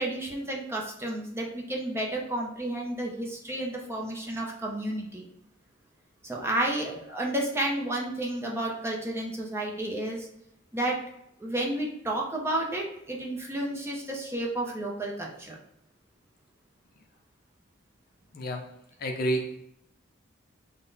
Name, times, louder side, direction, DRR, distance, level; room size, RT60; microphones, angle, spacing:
voice 1, 0.0-5.2 6.2-10.3 10.7-11.0 11.4-15.6, right 1 dB, 10° right, -2 dB, 0.5 m, -31 dB
voice 2, 18.3-18.7 19.0-19.6, right 1 dB, 45° left, 3 dB, 0.5 m, -30 dB
3.9 x 2.1 x 3.8 m, 0.76 s
head